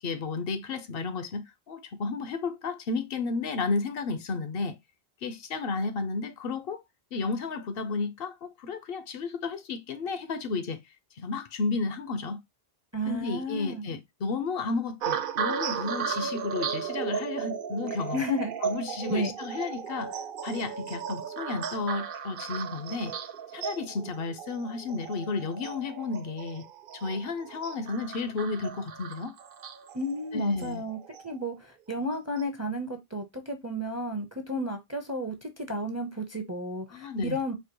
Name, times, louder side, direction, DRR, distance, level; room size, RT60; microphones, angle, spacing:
voice 1, 0.0-4.8 5.2-6.8 7.1-10.8 11.2-12.4 13.1-18.2 18.6-23.2 23.5-26.6 26.9-29.4 30.3-30.8 36.9-37.4, left 4 dB, 70° left, 0.8 m, -32 dB
voice 2, 12.9-13.9 18.1-18.5 19.1-19.3 29.9-31.0 31.2-37.5, equal, 20° right, 0.5 m, -32 dB
sound 1, 15.0-31.5 32.1-32.4, right 7 dB, 65° right, 0.7 m, -36 dB
4.3 x 2.7 x 2.9 m
omnidirectional pair, 1.0 m